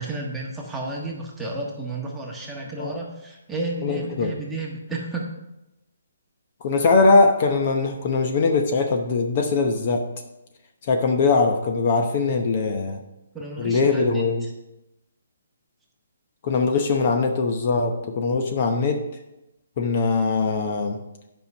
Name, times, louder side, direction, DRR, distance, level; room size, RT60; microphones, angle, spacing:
voice 1, 0.0-5.3 13.3-14.5, right 2 dB, 5° right, -3 dB, 1.3 m, -32 dB
voice 2, 3.8-4.3 6.6-10.1 10.8-13.0 13.6-14.5 16.4-19.0 19.8-21.0, left 3 dB, 40° left, 4 dB, 0.8 m, -21 dB
8.8 x 5.5 x 5.4 m, 0.94 s
hypercardioid pair, 160°, 0 cm